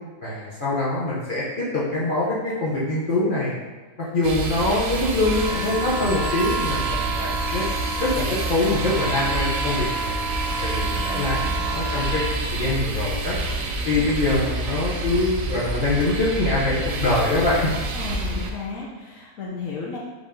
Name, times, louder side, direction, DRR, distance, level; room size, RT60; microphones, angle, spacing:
voice 1, 0.2-3.5 4.0-10.2 10.6-12.2 12.5-13.4 13.9-17.7, left 2 dB, 40° left, -8 dB, 0.8 m, -24 dB
sound 1, 4.2-18.5, right 2 dB, 70° right, 0.9 m, -28 dB
sound 2, 5.2-12.4, right 2 dB, 90° right, 0.5 m, -30 dB
voice 2, 10.9-11.5 17.9-20.0, left 4 dB, 65° left, -5 dB, 1.0 m, -34 dB
5.1 x 2.7 x 3.6 m, 1.3 s
omnidirectional pair, 1.6 m